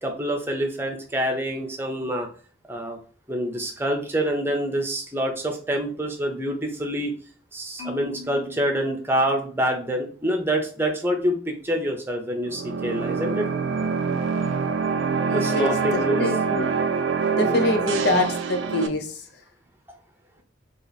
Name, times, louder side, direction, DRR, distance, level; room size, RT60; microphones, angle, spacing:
voice 1, 0.0-2.3 2.7-3.0 3.3-7.1 7.5-13.5 15.3-16.2 17.4-17.9, equal, 10° right, 3 dB, 0.7 m, -26 dB
Marimba xylophone, 7.8-10.0, left 3 dB, 35° left, 1.3 m, -42 dB
sound 1, 12.4-18.9, right 5 dB, 90° right, 0.5 m, -25 dB
voice 2, 15.3-16.7 17.3-19.2, left 1 dB, 60° left, 6 dB, 0.6 m, -25 dB
3.0 x 2.9 x 4.0 m, 0.42 s
head